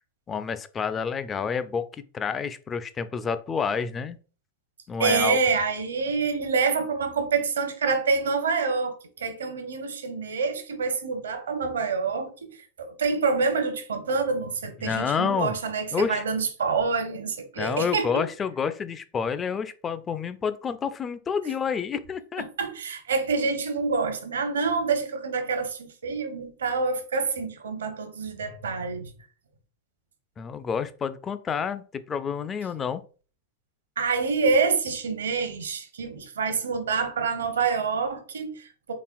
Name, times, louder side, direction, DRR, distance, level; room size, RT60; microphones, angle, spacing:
voice 1, 0.3-1.9 2.1-4.2 4.9-5.4 14.8-15.6 15.9-16.2 17.6-22.4 30.4-33.0, left 6 dB, 20° left, 0.3 m, -29 dB
voice 2, 5.0-18.2 22.4-29.1 34.0-38.9, right 4 dB, 65° right, 0.7 m, -27 dB
4.1 x 3.3 x 2.4 m
figure-of-eight pair, 90°, 0 cm